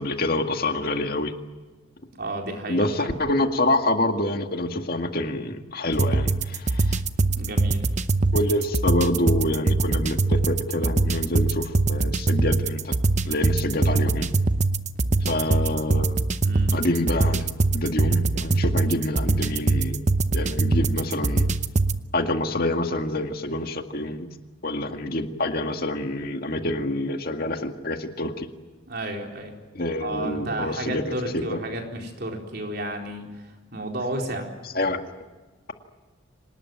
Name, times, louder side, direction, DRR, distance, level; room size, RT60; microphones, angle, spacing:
voice 1, 0.0-1.3 2.7-7.0 8.3-13.0 13.3-14.3 15.2-16.3 16.7-17.5 17.7-20.0 20.3-21.6 22.1-24.3 24.6-28.5 29.7-31.6 34.7-35.0, left 1 dB, 50° left, 5 dB, 2.0 m, -27 dB
voice 2, 2.2-3.1 7.4-7.8 16.4-16.7 28.9-29.5 30.0-33.3 33.7-34.5, right 1 dB, 50° right, 1 dB, 4.3 m, -32 dB
sound 1, 5.9-22.0, right 2 dB, 35° right, 0.8 m, -23 dB
26.0 x 19.5 x 9.2 m, 1.3 s
head